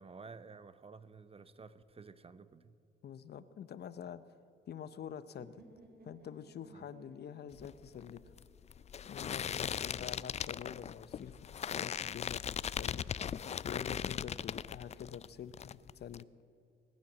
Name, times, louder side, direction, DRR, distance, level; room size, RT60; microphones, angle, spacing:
voice 1, 0.0-2.8 6.7-6.9 9.4-9.7, right 4 dB, 30° right, 14 dB, 0.7 m, -53 dB
voice 2, 3.0-4.2 4.7-5.6 6.0-8.3 9.1-16.3, left 8 dB, 55° left, 14 dB, 0.7 m, -47 dB
sound 1, 5.4-9.3, right 2 dB, 50° right, 2.3 m, -61 dB
sound 2, 7.5-15.3 15.5-16.2, left 8 dB, 35° left, 0.3 m, -39 dB
20.5 x 9.3 x 7.3 m, 2.5 s
cardioid pair, 90°, 20 cm